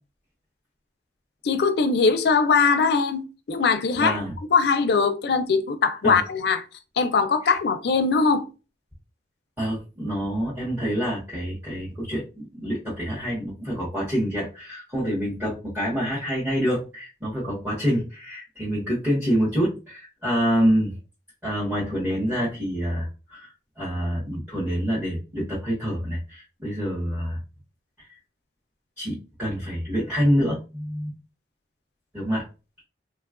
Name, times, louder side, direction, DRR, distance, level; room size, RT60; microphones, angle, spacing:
voice 1, 1.4-4.2 4.5-6.6 7.0-8.5, left 5 dB, 65° left, 0.4 m, -21 dB
voice 2, 3.9-4.3 6.0-6.2 7.4-7.6 9.6-21.0 21.4-27.4 28.0-28.2 29.0-31.1 32.1-32.5, equal, 10° right, 0.8 m, -27 dB
3.2 x 2.2 x 2.4 m
head